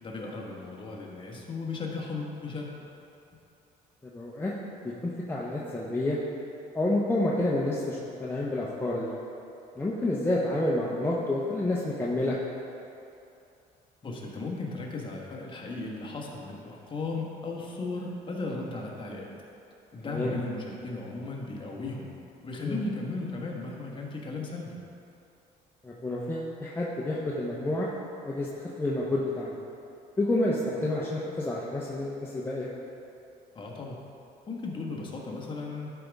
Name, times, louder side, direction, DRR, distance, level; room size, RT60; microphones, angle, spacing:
voice 1, 0.0-2.7 14.0-19.3 19.9-22.1 22.4-24.8 33.5-34.0 34.5-35.9, left 3 dB, 30° left, -2 dB, 1.4 m, -36 dB
voice 2, 4.0-4.5 4.8-6.2 6.7-9.1 9.8-12.4 20.0-20.3 22.6-22.8 25.8-27.9 28.2-28.5 28.8-29.6 30.2-32.7, left 1 dB, 15° left, -5 dB, 0.8 m, -29 dB
11.5 x 5.2 x 3.5 m, 2.7 s
cardioid pair, 110°, 17 cm